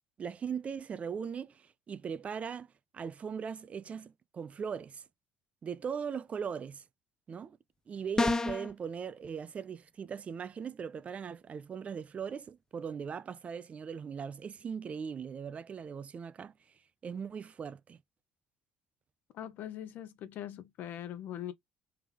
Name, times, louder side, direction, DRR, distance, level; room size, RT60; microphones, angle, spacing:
voice 1, 0.2-2.7 2.9-5.0 5.6-6.8 7.3-7.6 7.9-16.5 17.0-18.0, right 6 dB, 40° right, 0.5 m, -39 dB
sound 1, 8.2-8.7, left 2 dB, 20° left, 0.6 m, -28 dB
voice 2, 19.3-21.5, left 11 dB, 65° left, 0.9 m, -41 dB
3.5 x 3.4 x 3.3 m
hypercardioid pair, 60°, 3 cm